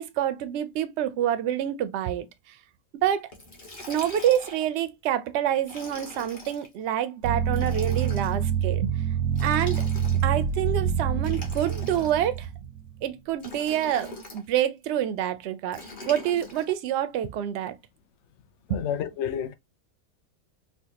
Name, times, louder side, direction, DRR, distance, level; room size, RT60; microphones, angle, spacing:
voice 1, 0.0-2.5 2.9-3.3 3.9-8.9 9.4-9.8 10.2-12.5 13.0-17.8 18.7-18.8, right 11 dB, 70° right, 0.6 m, -27 dB
Liquid, 3.3-4.8 5.6-6.7 7.5-8.4 9.3-10.4 11.2-12.4 13.4-14.4 15.7-16.7, left 1 dB, 40° left, 1.0 m, -42 dB
sound 1, 7.2-13.0, right 8 dB, 85° right, 1.1 m, -26 dB
voice 2, 18.7-19.5, left 9 dB, 65° left, 0.7 m, -30 dB
4.4 x 2.2 x 2.8 m
omnidirectional pair, 1.6 m